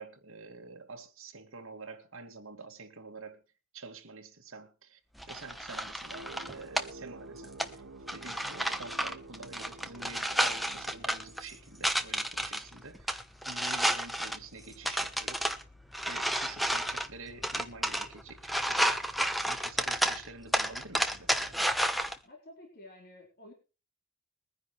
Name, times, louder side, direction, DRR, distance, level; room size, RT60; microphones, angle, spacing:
voice 1, 0.0-3.4 3.7-5.0 5.3-7.8 8.1-15.5 16.1-19.1 19.5-21.6, right 3 dB, 60° right, 2.3 m, -47 dB
sound 1, 5.2-22.2, equal, ahead, 1.0 m, -32 dB
sound 2, 6.1-11.9, right 2 dB, 90° right, 1.1 m, -49 dB
voice 2, 22.2-23.5, left 1 dB, 45° left, 4.2 m, -51 dB
22.0 x 10.5 x 3.2 m
head